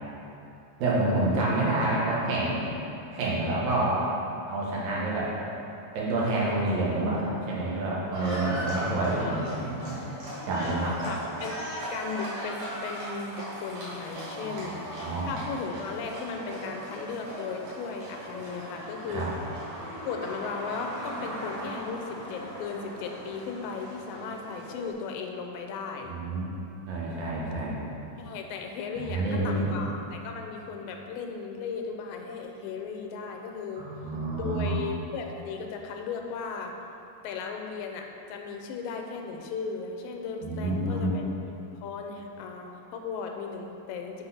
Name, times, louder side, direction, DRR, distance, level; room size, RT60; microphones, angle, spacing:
voice 1, 0.8-2.6 3.1-4.0 4.5-5.3 5.9-10.0 10.5-11.2 14.4-15.4 19.1-19.3 26.1-26.5 26.9-27.8 29.0-29.8 33.8-34.7 40.4-41.1, right 2 dB, 85° right, -6 dB, 3.1 m, -28 dB
Livestock farm animals working animals, 8.1-24.9, equal, 60° right, 3.0 m, -38 dB
Coin (dropping), 9.0-9.9 16.0-16.1, left 1 dB, 65° left, 1.1 m, -45 dB
voice 2, 10.6-19.3 20.1-26.1 28.2-33.9 34.3-36.7 37.2-44.2, left 5 dB, 85° left, 3 dB, 2.4 m, -36 dB
8.3 x 4.1 x 5.6 m, 2.8 s
omnidirectional pair, 3.9 m